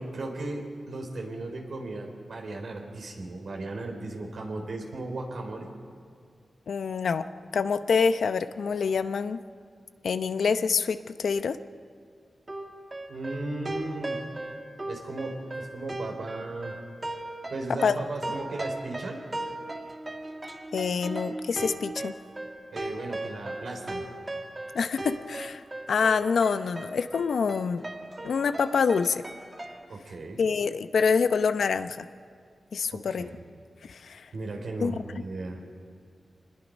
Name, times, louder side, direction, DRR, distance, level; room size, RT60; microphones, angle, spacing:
voice 1, 0.0-5.7 13.1-14.2 14.9-16.8 17.5-19.2 22.7-24.1 29.9-30.4 32.9-33.4 34.3-35.6, right 2 dB, 70° right, 2 dB, 4.1 m, -36 dB
voice 2, 6.7-7.2 7.5-9.4 10.0-11.6 17.8-18.0 20.7-22.1 24.7-25.6 25.9-27.8 28.2-29.2 30.4-32.1 32.7-33.3 33.8-34.3 34.8-34.9, left 5 dB, 80° left, 10 dB, 0.7 m, -26 dB
sound 1, 12.5-29.9, right 1 dB, 25° right, 1.8 m, -38 dB
25.5 x 20.5 x 5.3 m, 2.2 s
cardioid pair, 65°, 0 cm